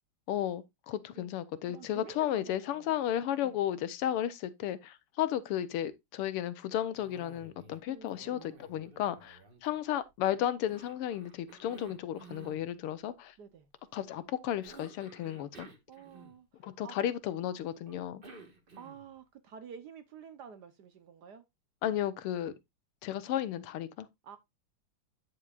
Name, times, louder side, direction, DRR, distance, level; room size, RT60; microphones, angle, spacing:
voice 1, 0.3-13.4 13.9-15.7 16.6-18.2 21.8-22.5 23.0-24.1, left 11 dB, 85° left, 1.8 m, -34 dB
voice 2, 1.7-2.9 3.4-3.6 7.9-8.5 13.4-13.7 15.9-16.5 16.8-17.0 18.8-21.4 24.2-24.4, right 7 dB, 60° right, 1.2 m, -49 dB
Cough, 6.9-7.8 8.1-10.1 10.7-12.6 14.6-16.6 17.9-19.2, right 2 dB, 30° right, 1.3 m, -53 dB
9.6 x 7.6 x 2.4 m
omnidirectional pair, 2.4 m